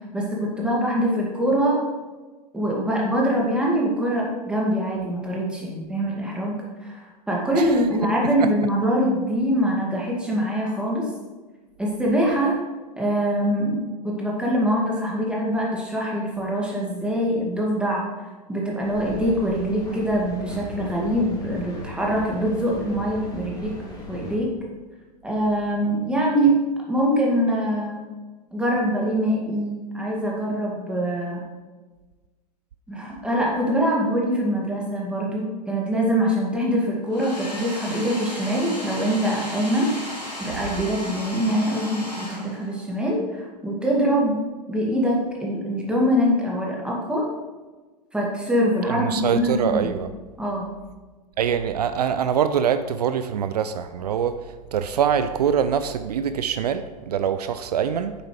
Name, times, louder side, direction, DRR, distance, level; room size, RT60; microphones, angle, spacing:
voice 1, 0.1-1.8 2.5-11.1 11.8-12.6 13.0-18.1 18.5-23.7 24.1-24.5 25.2-26.6 26.9-28.0 28.5-31.4 32.9-40.0 40.4-44.4 44.7-47.3 48.1-49.9 50.4-50.7, equal, 5° right, -3 dB, 2.2 m, -24 dB
Mechanical fan, 18.8-24.4, left 1 dB, 20° left, 2.3 m, -38 dB
Domestic sounds home sounds, 37.1-42.9, left 1 dB, 85° left, 2.2 m, -35 dB
voice 2, 48.9-50.1 51.4-54.4 54.7-58.2, right 8 dB, 70° right, 11 dB, 0.4 m, -24 dB
8.9 x 7.0 x 3.3 m, 1.3 s
figure-of-eight pair, 95°, 21 cm